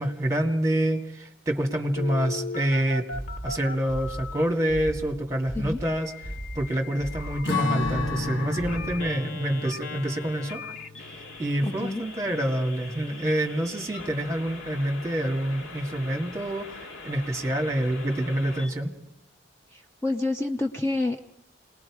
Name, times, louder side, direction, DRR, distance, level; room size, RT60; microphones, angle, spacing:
voice 1, 0.0-3.1 3.4-6.1 6.6-10.6 11.4-18.9, right 1 dB, 15° right, 3 dB, 1.9 m, -27 dB
Telephone, 2.0-4.4 5.9-18.7, left 3 dB, 90° left, 1.8 m, -40 dB
sound 1, 3.1-9.2, right 1 dB, 50° left, 2.4 m, -37 dB
Strum, 7.5-12.1, left 3 dB, 70° left, 1.1 m, -33 dB
voice 2, 11.6-12.0 19.7-21.3, left 2 dB, 15° left, 3 dB, 0.7 m, -28 dB
28.0 x 20.0 x 4.9 m, 0.77 s
head